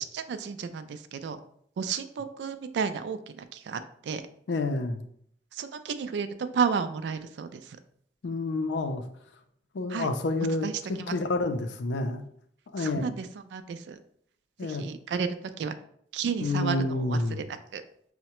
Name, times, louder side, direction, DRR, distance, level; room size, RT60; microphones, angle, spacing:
voice 1, 0.1-1.4 1.8-4.2 5.5-7.8 9.9-10.1 10.6-10.7 11.0-11.1 12.8-14.0 14.6-15.3 15.6-15.8 16.1-17.8, right 6 dB, 70° right, 10 dB, 0.3 m, -32 dB
voice 2, 4.5-5.1 8.2-9.0 9.7-12.2 12.7-13.1 14.6-14.8 16.4-17.4, left 2 dB, 80° left, 7 dB, 0.4 m, -29 dB
5.5 x 2.1 x 2.9 m, 0.66 s
head